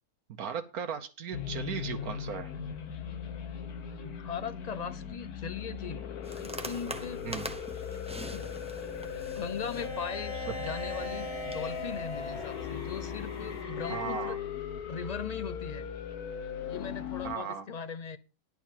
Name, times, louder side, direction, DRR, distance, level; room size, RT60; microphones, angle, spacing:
voice 1, 0.4-2.5 7.2-7.5 13.9-14.4 17.2-17.7, right 7 dB, 75° right, 7 dB, 1.3 m, -36 dB
sound 1, 1.3-17.4, left 8 dB, 80° left, 1.5 m, -39 dB
voice 2, 4.0-6.0 6.3-7.2 8.3-8.5 9.4-14.4 14.8-15.9 16.7-18.2, left 6 dB, 55° left, 12 dB, 0.4 m, -39 dB
sound 2, 6.2-13.6, right 1 dB, 5° right, 0.6 m, -45 dB
Bowed string instrument, 9.8-14.4, equal, 30° left, 1.4 m, -41 dB
10.5 x 4.6 x 7.3 m, 0.32 s
omnidirectional pair, 1.6 m